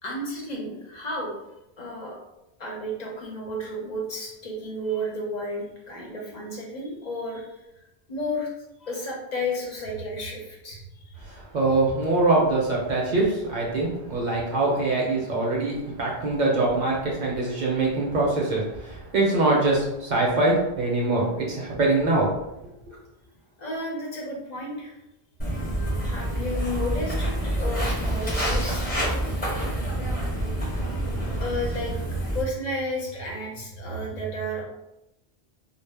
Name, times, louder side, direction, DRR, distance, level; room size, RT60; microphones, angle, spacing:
voice 1, 0.0-1.3 1.8-2.2 2.6-7.4 8.1-8.5 8.8-10.8 23.6-25.0 26.0-28.9 31.4-32.0 32.3-34.6, left 1 dB, 50° left, -2 dB, 0.6 m, -32 dB
voice 2, 11.5-22.3, right 2 dB, 55° right, -2 dB, 0.6 m, -23 dB
Walk footsteps, 25.4-32.4, right 1 dB, 10° left, 0.6 m, -27 dB
2.1 x 2.0 x 3.2 m, 0.90 s
omnidirectional pair, 1.1 m